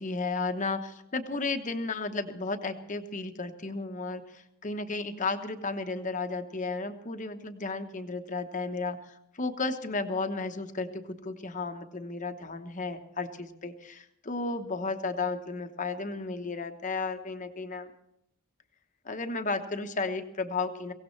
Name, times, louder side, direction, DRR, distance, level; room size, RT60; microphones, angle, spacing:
voice 1, 0.0-9.0 9.4-17.9 19.0-20.9, left 3 dB, 35° left, 7 dB, 1.0 m, -33 dB
23.5 x 17.0 x 3.2 m, 0.80 s
head